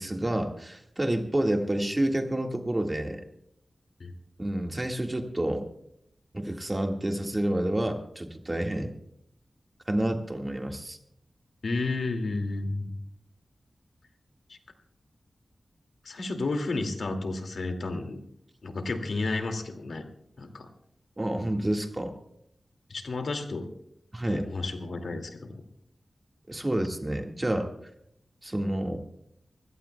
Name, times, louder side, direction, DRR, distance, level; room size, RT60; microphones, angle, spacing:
voice 1, 0.0-3.2 4.4-5.7 6.3-8.9 9.9-11.0 21.2-22.1 24.1-24.5 26.5-27.7 28.4-29.0, right 1 dB, 25° right, 3 dB, 1.8 m, -29 dB
voice 2, 11.6-12.9 14.5-14.6 16.0-18.2 18.6-20.0 20.4-20.7 22.9-23.7 24.2-25.6, left 3 dB, 80° left, 4 dB, 2.3 m, -32 dB
25.0 x 16.5 x 2.3 m, 0.75 s
wide cardioid pair, 60°, 0 cm